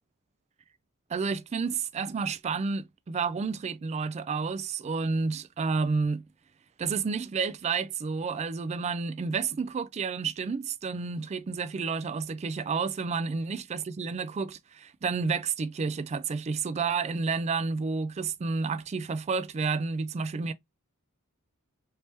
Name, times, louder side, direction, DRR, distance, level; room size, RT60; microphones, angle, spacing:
voice 1, 1.1-6.2 6.8-20.5, right 5 dB, 30° right, 0.3 m, -30 dB
3.2 x 2.8 x 3.0 m
head